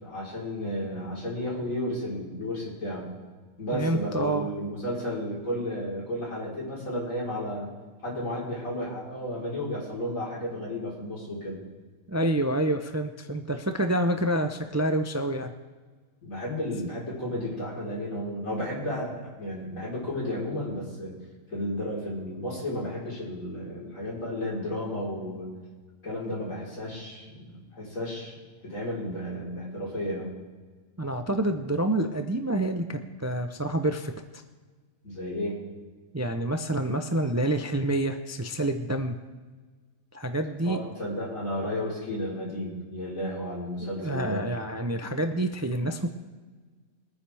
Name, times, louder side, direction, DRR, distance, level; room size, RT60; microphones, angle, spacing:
voice 1, 0.0-3.1 3.6-7.7 8.0-11.6 16.2-21.1 21.5-25.5 26.0-28.4 28.6-30.3 35.0-35.6 40.6-44.4, left 1 dB, 80° left, -5 dB, 4.7 m, -33 dB
voice 2, 3.7-4.5 12.1-15.5 31.0-34.1 36.1-39.2 40.1-40.8 44.0-46.1, right 1 dB, 20° right, 6 dB, 0.4 m, -27 dB
23.0 x 9.7 x 3.5 m, 1.4 s
omnidirectional pair, 1.4 m